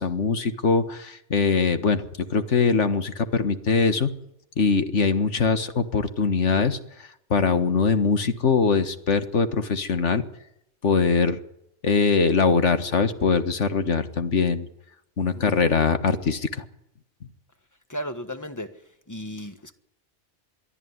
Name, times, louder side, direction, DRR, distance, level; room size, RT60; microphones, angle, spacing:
voice 1, 0.0-2.1 2.3-4.1 4.6-6.8 7.3-10.3 10.8-11.4 11.8-14.7 15.2-16.5, left 4 dB, 80° left, 1.9 m, -22 dB
voice 2, 17.9-18.8 19.1-19.7, equal, 15° left, 1.5 m, -34 dB
23.0 x 13.5 x 9.6 m
omnidirectional pair, 1.2 m